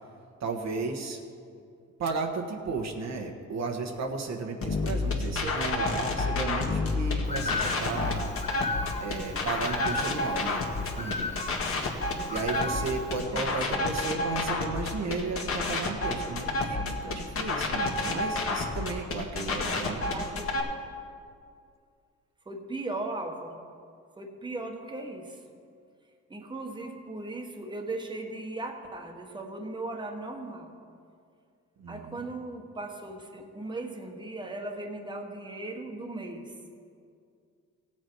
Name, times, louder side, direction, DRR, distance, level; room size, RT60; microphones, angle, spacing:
voice 1, 0.4-1.2 2.0-8.3 9.0-11.4 12.3-20.0 31.8-32.3, right 4 dB, 60° right, 2 dB, 1.3 m, -34 dB
sound 1, 4.6-20.6, left 3 dB, 45° left, 1.7 m, -30 dB
Bird, 7.2-13.2, left 3 dB, 20° left, 1.3 m, -36 dB
voice 2, 13.3-13.9 19.7-20.5 22.5-23.6 24.2-25.4 26.3-30.7 31.9-36.5, right 2 dB, 15° right, 2 dB, 1.3 m, -38 dB
16.5 x 7.5 x 4.7 m, 2.3 s
cardioid pair, 90°, 30 cm